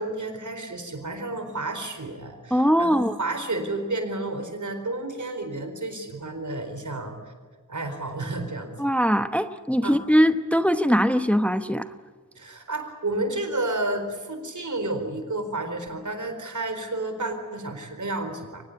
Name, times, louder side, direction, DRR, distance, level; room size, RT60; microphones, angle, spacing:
voice 1, 0.0-7.3 7.7-8.8 9.8-10.0 12.4-18.6, right 2 dB, 65° right, 7 dB, 4.3 m, -31 dB
voice 2, 2.5-3.2 8.8-11.9, equal, 5° left, 10 dB, 1.0 m, -21 dB
23.5 x 19.5 x 9.8 m, 1.5 s
wide cardioid pair, 55°, 32 cm